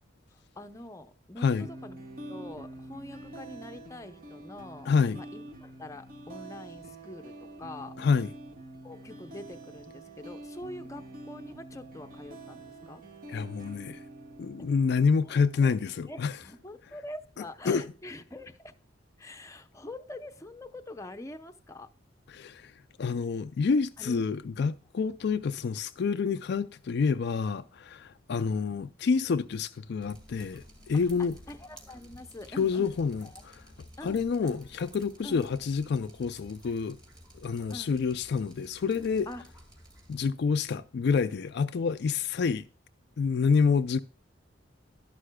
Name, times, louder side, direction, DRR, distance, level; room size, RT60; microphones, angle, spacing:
voice 1, 0.3-2.0 2.3-8.0 8.8-13.0 14.6-14.7 15.3-15.8 16.1-18.7 19.2-21.9 24.0-24.2 30.9-32.9 33.2-33.4 34.0-34.6 35.2-35.4 37.7-37.9 39.3-39.4, left 1 dB, 15° left, 0.7 m, -45 dB
sound 1, 1.6-16.6, right 2 dB, 50° right, 1.7 m, -46 dB
voice 2, 4.9-5.2 8.0-8.3 13.3-14.0 14.4-16.4 17.7-17.8 22.3-22.7 23.0-31.4 32.6-33.3 34.0-37.0 37.3-39.3 40.1-42.6 43.2-44.0, left 5 dB, 60° left, 0.4 m, -28 dB
Drip, 30.0-40.3, equal, 25° right, 2.5 m, -53 dB
12.0 x 11.0 x 2.2 m
head